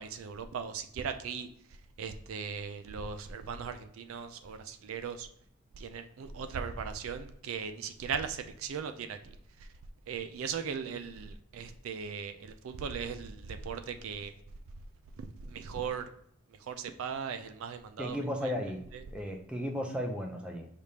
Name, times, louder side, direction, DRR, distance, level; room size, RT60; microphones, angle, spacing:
voice 1, 0.0-1.5 2.0-5.3 5.8-9.3 9.6-9.7 10.1-14.3 15.2-16.1 16.6-18.2 18.4-18.5 18.9-19.0, right 6 dB, 75° right, 8 dB, 0.4 m, -38 dB
voice 2, 18.0-18.8 19.1-20.7, equal, 5° right, 2 dB, 0.5 m, -35 dB
4.8 x 3.4 x 2.8 m, 0.71 s
head